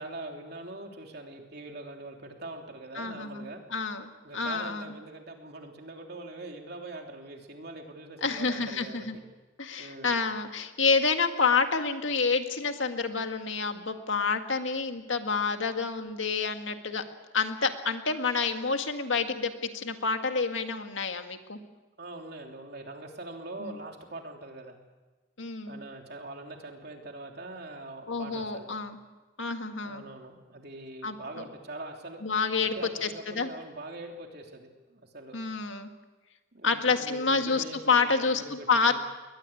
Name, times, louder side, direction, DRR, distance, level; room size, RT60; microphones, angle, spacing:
voice 1, 0.0-3.6 4.2-9.2 9.8-10.2 22.0-24.8 25.7-28.7 29.8-32.2 32.6-35.4 36.5-39.0, right 2 dB, 55° right, 2 dB, 3.3 m, -43 dB
voice 2, 3.0-4.9 8.2-9.2 9.6-17.0 17.3-21.6 23.6-23.8 25.4-25.8 28.1-29.0 29.4-30.0 31.0-31.1 32.2-32.8 33.0-33.5 35.3-35.9 36.6-39.0, left 4 dB, 75° left, 6 dB, 1.9 m, -28 dB
22.0 x 19.5 x 8.6 m, 1.2 s
head